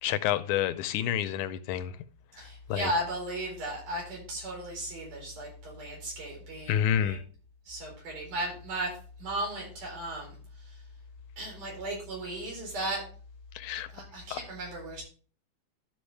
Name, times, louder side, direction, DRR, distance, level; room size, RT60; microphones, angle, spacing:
voice 1, 0.0-1.9 2.7-2.9 6.7-7.2 13.6-13.9 14.3-14.4, left 10 dB, 80° left, 2.0 m, -28 dB
voice 2, 2.4-7.2 7.7-10.4 10.6-10.8 11.4-13.1 13.9-15.0, right 1 dB, 90° right, 5.8 m, -36 dB
12.5 x 6.0 x 3.3 m
omnidirectional pair, 3.5 m